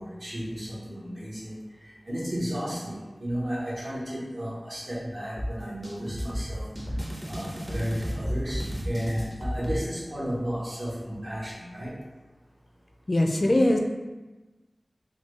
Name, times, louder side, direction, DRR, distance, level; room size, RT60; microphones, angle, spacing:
voice 1, 0.0-1.6 1.8-6.7 7.3-11.9, equal, 55° right, -7 dB, 1.0 m, -33 dB
sound 1, 5.4-9.8, equal, 20° right, 0.6 m, -32 dB
voice 2, 13.1-13.8, left 1 dB, 50° left, 2 dB, 0.3 m, -21 dB
3.3 x 2.3 x 3.1 m, 1.2 s
wide cardioid pair, 70°, 0 cm